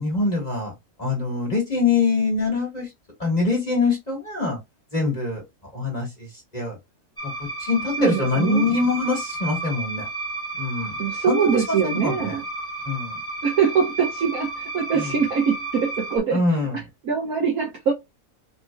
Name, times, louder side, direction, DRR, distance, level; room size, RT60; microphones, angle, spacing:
voice 1, 0.0-2.9 3.2-4.6 4.9-5.4 5.7-6.8 7.2-10.1 10.6-10.9 11.3-11.8 12.0-12.4 12.8-13.2 14.9-15.2 16.3-16.8, left 3 dB, 30° left, 2.1 m, -24 dB
sound 1, 7.2-16.2, right 2 dB, 10° right, 1.2 m, -32 dB
voice 2, 8.0-8.6 11.0-12.4 13.4-16.4 17.0-17.9, right 6 dB, 75° right, 1.5 m, -23 dB
4.2 x 3.0 x 2.2 m
omnidirectional pair, 1.5 m